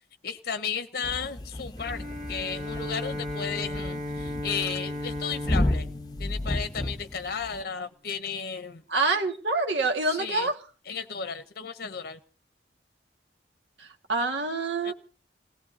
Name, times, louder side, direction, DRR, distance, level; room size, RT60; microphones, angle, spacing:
voice 1, 0.2-2.0 2.3-5.9 6.2-8.8 10.1-10.5 10.9-12.2 14.8-14.9, left 6 dB, 60° left, 11 dB, 0.8 m, -34 dB
sound 1, 1.0-7.6, left 1 dB, 20° left, 0.9 m, -33 dB
Bowed string instrument, 1.8-7.3, left 1 dB, 45° right, 3.1 m, -36 dB
voice 2, 8.9-10.5 14.1-14.9, right 3 dB, 85° right, 4 dB, 1.9 m, -26 dB
28.5 x 17.5 x 2.8 m, 0.38 s
head